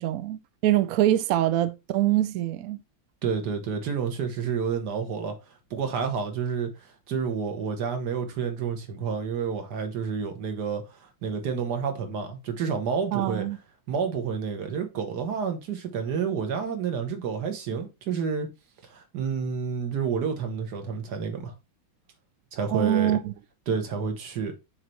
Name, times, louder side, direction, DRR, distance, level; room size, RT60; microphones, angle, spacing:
voice 1, 0.0-2.8 13.1-13.6 22.7-23.3, right 13 dB, 90° right, 0.7 m, -24 dB
voice 2, 3.2-5.3 5.7-6.7 7.1-10.8 11.2-13.5 13.9-18.5 18.9-21.5 22.5-23.2 23.7-24.5, right 6 dB, 60° right, 1.7 m, -29 dB
6.5 x 3.3 x 4.4 m
omnidirectional pair, 2.2 m